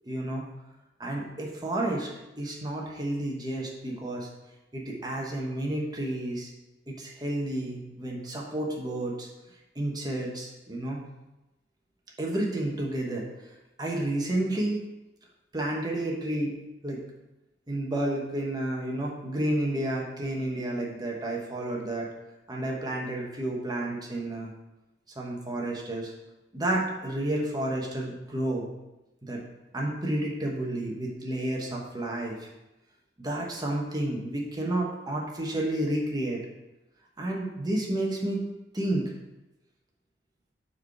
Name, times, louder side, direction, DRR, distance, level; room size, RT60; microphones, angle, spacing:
voice 1, 0.0-0.5 1.0-2.1 2.4-4.3 4.7-6.5 6.9-9.3 9.7-11.1 12.2-13.2 13.8-14.8 15.5-16.6 16.8-17.0 17.7-22.1 22.5-24.5 25.2-26.1 26.5-28.7 29.2-29.4 29.7-32.5 33.2-36.4 37.2-38.5 38.7-39.1, right 1 dB, 20° right, -2 dB, 1.1 m, -31 dB
4.8 x 4.7 x 5.9 m, 0.98 s
head